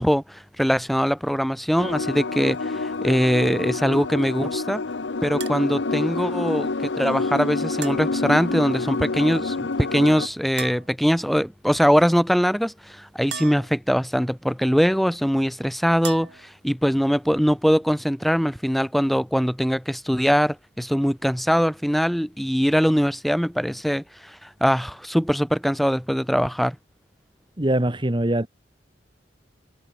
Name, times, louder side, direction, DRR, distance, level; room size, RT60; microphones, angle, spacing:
voice 1, 0.0-4.8 5.2-26.8, equal, ahead, 2.5 m, -22 dB
sound 1, 1.8-10.3, left 3 dB, 85° left, 0.9 m, -28 dB
sound 2, 5.4-5.6 7.8-8.1 10.6-10.9 13.3-13.8 16.0-16.5, right 7 dB, 70° right, 4.8 m, -36 dB
voice 2, 27.6-28.5, right 1 dB, 25° right, 1.6 m, -22 dB
head